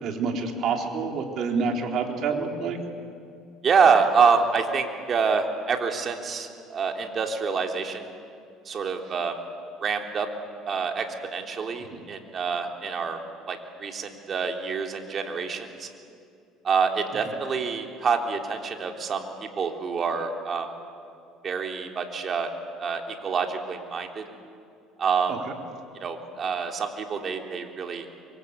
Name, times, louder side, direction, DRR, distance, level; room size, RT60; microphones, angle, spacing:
voice 1, 0.0-2.8 11.9-12.0 25.3-25.5, right 5 dB, 55° right, 3 dB, 3.8 m, -28 dB
voice 2, 3.6-8.1 8.6-9.4 9.8-10.3 10.6-13.2 13.5-15.9 16.6-19.3 19.6-20.7 21.4-22.5 22.8-24.2 25.0-25.3 26.0-28.0, right 5 dB, 40° right, 3 dB, 3.4 m, -26 dB
26.0 x 24.0 x 8.3 m, 2.4 s
supercardioid pair, 100°, 0 cm